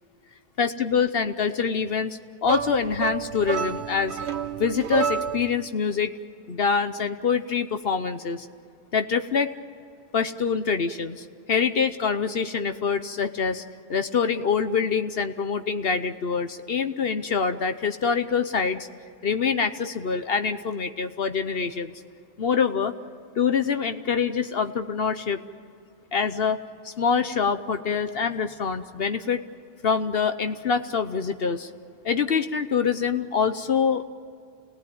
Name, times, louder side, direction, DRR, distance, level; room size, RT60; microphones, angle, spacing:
voice 1, 0.6-4.2 4.6-6.1 6.5-8.5 8.9-9.5 10.1-13.6 13.9-18.9 19.2-21.9 22.4-22.9 23.4-25.4 26.1-26.6 26.8-29.4 29.8-31.7 32.0-34.0, left 6 dB, 60° left, 9 dB, 1.1 m, -25 dB
sound 1, 2.4-5.6, right 6 dB, 70° right, 1.2 m, -29 dB
28.5 x 18.5 x 9.4 m, 2.4 s
omnidirectional pair, 1.1 m